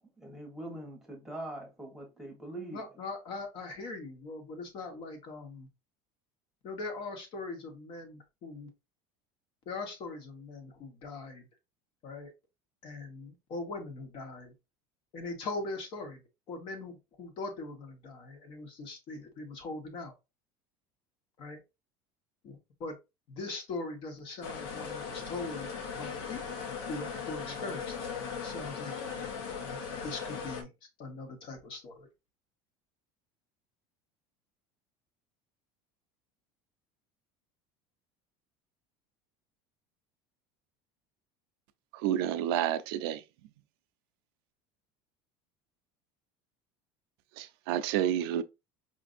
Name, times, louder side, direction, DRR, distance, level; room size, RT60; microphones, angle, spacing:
voice 1, 0.2-2.9, right 1 dB, 5° right, 1.1 m, -42 dB
voice 2, 2.7-5.7 6.6-8.7 9.7-11.5 12.0-12.3 12.8-14.5 15.1-16.2 16.5-20.1 21.4-21.6 22.4-22.9 23.3-26.6 26.9-27.9 28.4-28.9 30.0-30.7 31.0-32.1, left 3 dB, 45° left, 1.1 m, -41 dB
sound 1, 24.4-30.6, left 6 dB, 80° left, 1.0 m, -38 dB
voice 3, 41.9-43.2 47.4-48.4, right 11 dB, 80° right, 0.4 m, -30 dB
5.1 x 2.5 x 2.5 m
cardioid pair, 160°, 12 cm